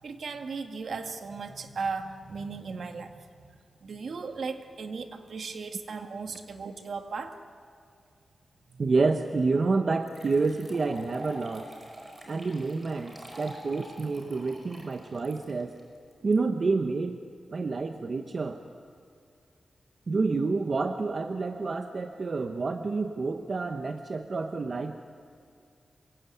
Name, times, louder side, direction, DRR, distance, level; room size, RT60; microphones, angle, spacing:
voice 1, 0.0-7.4 8.7-8.9, right 4 dB, 65° right, 6 dB, 2.0 m, -37 dB
voice 2, 8.8-11.7 12.3-15.7 16.2-17.2 17.5-18.6 20.1-25.0, right 3 dB, 45° right, 6 dB, 1.1 m, -28 dB
sound 1, 9.4-9.5 10.0-16.3, right 1 dB, 25° right, 5.5 m, -46 dB
27.0 x 22.5 x 9.5 m, 2.3 s
wide cardioid pair, 160°, 0 cm